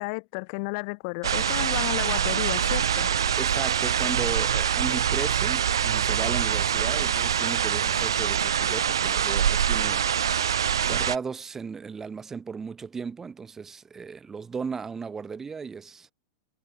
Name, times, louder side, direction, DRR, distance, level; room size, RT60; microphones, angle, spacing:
voice 1, 0.0-3.1, left 34 dB, 55° left, 0.4 m, -32 dB
sound 1, 1.2-11.2, right 8 dB, 85° right, 0.5 m, -24 dB
voice 2, 3.4-10.0 10.8-16.1, right 5 dB, 15° right, 0.4 m, -35 dB
hypercardioid pair, 105°, 2 cm